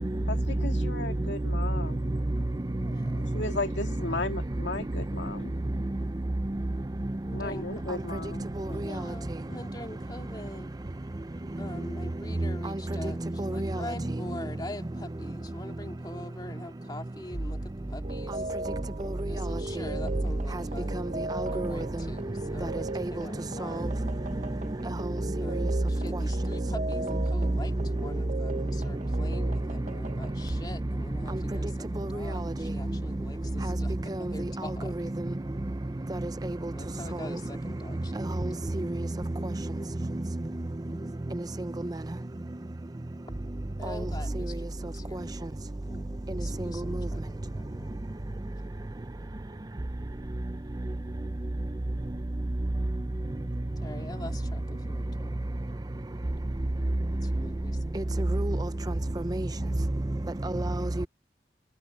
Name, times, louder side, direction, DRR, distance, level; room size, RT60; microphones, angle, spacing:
voice 1, 0.3-2.1 3.2-5.5 7.3-8.5, left 3 dB, 85° left, 2.1 m, -35 dB
voice 2, 2.8-3.4 7.2-7.8 8.7-10.8 11.6-18.5 19.3-21.1 21.5-24.2 25.4-35.1 36.7-38.7 43.8-45.3 45.9-46.0 46.3-47.9 53.8-55.4 57.2-58.3, left 1 dB, 25° left, 2.6 m, -44 dB
voice 3, 13.4-13.7 21.6-21.8 38.7-38.9 58.0-58.1 58.3-58.6 59.3-59.5 60.4-61.1, right 1 dB, 20° right, 0.5 m, -29 dB
sound 1, 18.0-30.6, right 2 dB, 45° right, 1.0 m, -38 dB
head